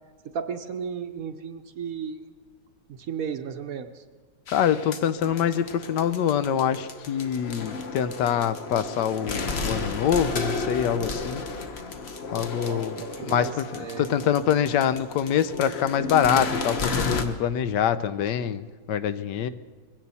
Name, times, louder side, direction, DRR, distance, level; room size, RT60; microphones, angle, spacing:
voice 1, 0.2-2.2 2.9-4.0 12.6-14.3, right 6 dB, 60° right, 8 dB, 1.0 m, -34 dB
voice 2, 4.5-11.4 12.3-12.9 13.3-19.5, left 9 dB, 80° left, 13 dB, 1.3 m, -25 dB
sound 1, 4.5-17.2, left 3 dB, 45° left, 1.1 m, -33 dB
21.5 x 16.5 x 4.2 m, 1.5 s
omnidirectional pair, 1.9 m